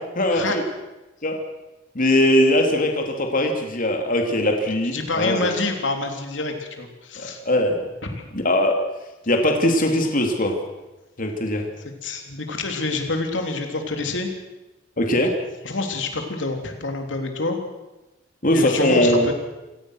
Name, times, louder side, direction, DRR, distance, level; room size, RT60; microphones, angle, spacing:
voice 1, 0.1-0.6 1.2-1.3 1.9-5.5 7.2-7.8 8.3-8.7 9.3-10.6 11.2-11.6 15.0-15.3 18.4-19.3, left 1 dB, 45° left, 3 dB, 3.0 m, -20 dB
voice 2, 4.9-7.4 8.0-8.1 12.0-14.3 15.6-17.6 18.5-19.3, left 3 dB, 70° left, 4 dB, 3.5 m, -27 dB
27.0 x 18.0 x 6.5 m, 1.1 s
head